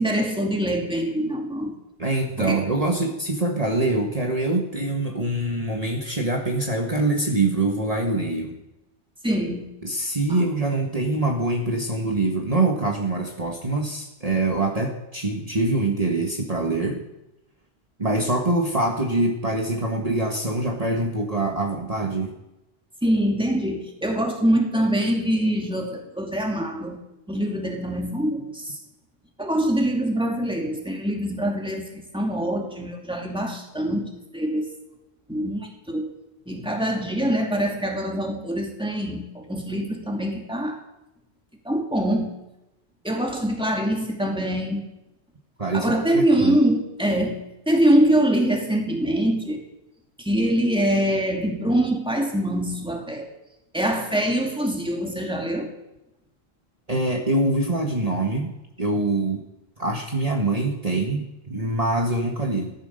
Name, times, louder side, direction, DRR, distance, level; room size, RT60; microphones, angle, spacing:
voice 1, 0.0-1.7 2.4-2.6 9.2-9.7 10.3-10.4 23.0-27.0 27.3-28.8 29.4-34.7 35.3-36.1 36.5-40.8 41.6-42.4 43.0-44.8 45.7-49.6 50.2-53.3 53.7-55.7, right 1 dB, 5° right, 1 dB, 2.4 m, -24 dB
voice 2, 2.0-8.6 9.8-17.0 18.0-22.3 45.6-46.6 56.9-58.5 58.8-59.4 59.8-62.7, right 2 dB, 35° right, 1 dB, 1.6 m, -24 dB
15.5 x 13.0 x 6.6 m, 0.92 s
omnidirectional pair, 1.0 m